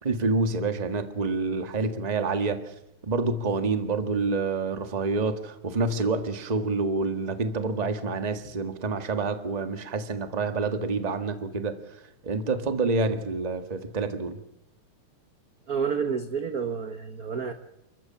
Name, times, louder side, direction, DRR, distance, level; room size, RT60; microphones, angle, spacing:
voice 1, 0.0-2.6 3.0-11.8 12.2-14.4, right 3 dB, 25° right, 8 dB, 1.0 m, -27 dB
voice 2, 15.7-17.5, right 6 dB, 60° right, 8 dB, 0.9 m, -29 dB
29.0 x 14.5 x 8.7 m, 0.87 s
omnidirectional pair, 3.3 m